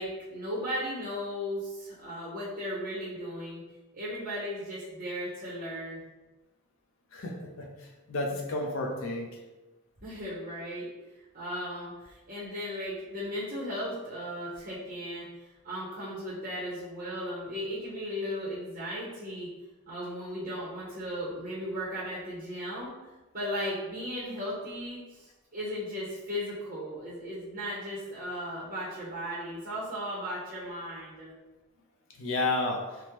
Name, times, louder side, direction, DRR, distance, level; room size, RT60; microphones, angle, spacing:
voice 1, 0.0-3.6 3.9-6.0 10.0-10.9 11.3-15.3 15.6-19.5 19.9-22.9 23.3-31.3, equal, 40° right, -8 dB, 0.6 m, -36 dB
voice 2, 7.1-7.7 8.1-9.3 32.2-32.8, left 2 dB, 60° left, 1 dB, 0.5 m, -31 dB
3.4 x 2.0 x 2.9 m, 1.1 s
head